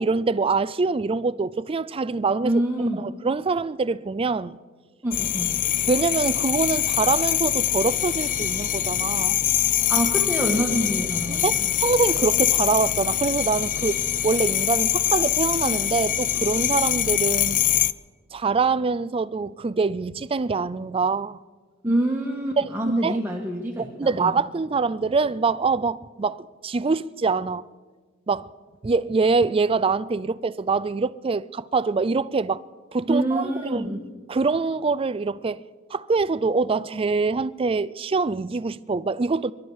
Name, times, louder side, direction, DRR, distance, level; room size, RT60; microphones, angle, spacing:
voice 1, 0.0-2.5 2.8-4.6 5.9-9.4 11.3-11.5 11.8-17.6 18.3-21.4 22.6-22.7 23.0-23.2 24.0-27.7 28.3-28.5 28.8-32.6 32.9-33.9 34.3-35.6 35.9-39.5, right 4 dB, 25° right, 0.4 m, -24 dB
voice 2, 2.4-3.0 5.0-5.5 9.9-11.7 21.8-24.4 33.1-34.0, right 1 dB, 10° right, 1.4 m, -26 dB
sound 1, 5.1-17.9, left 12 dB, 40° left, 0.4 m, -24 dB
24.0 x 12.0 x 4.8 m
head